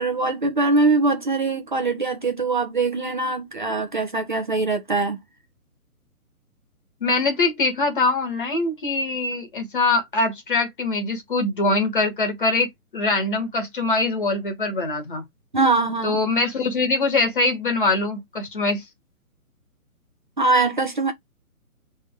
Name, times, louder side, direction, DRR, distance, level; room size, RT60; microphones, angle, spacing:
voice 1, 0.0-5.2 15.5-16.2 20.4-21.1, right 3 dB, 35° right, 0.8 m, -22 dB
voice 2, 7.0-15.2 16.0-18.8, left 3 dB, 35° left, 1.5 m, -23 dB
4.2 x 3.5 x 3.5 m
hypercardioid pair, 175°, 44 cm